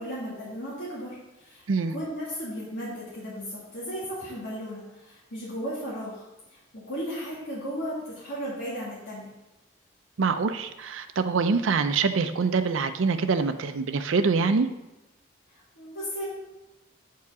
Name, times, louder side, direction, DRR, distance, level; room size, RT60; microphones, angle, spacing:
voice 1, 0.0-1.6 1.9-6.2 6.7-9.3 15.5-16.2, equal, 70° left, -8 dB, 2.2 m, -35 dB
voice 2, 10.2-14.7, right 4 dB, 90° right, 9 dB, 0.5 m, -25 dB
8.2 x 4.6 x 4.8 m, 0.99 s
head